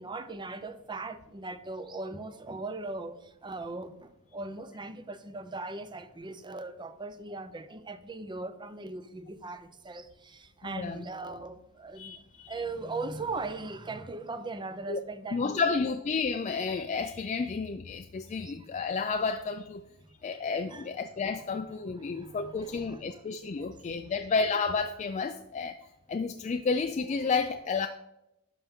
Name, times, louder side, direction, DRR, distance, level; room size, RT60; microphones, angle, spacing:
voice 1, 0.0-15.9 18.4-18.7 20.0-20.1 20.7-20.9 22.0-23.2 23.6-24.1, right 3 dB, 20° right, 0.5 m, -39 dB
voice 2, 10.6-11.0 12.0-12.6 14.9-15.0 15.3-19.8 20.2-25.8 26.1-27.9, left 4 dB, 30° left, 0.3 m, -31 dB
11.0 x 5.7 x 3.6 m
head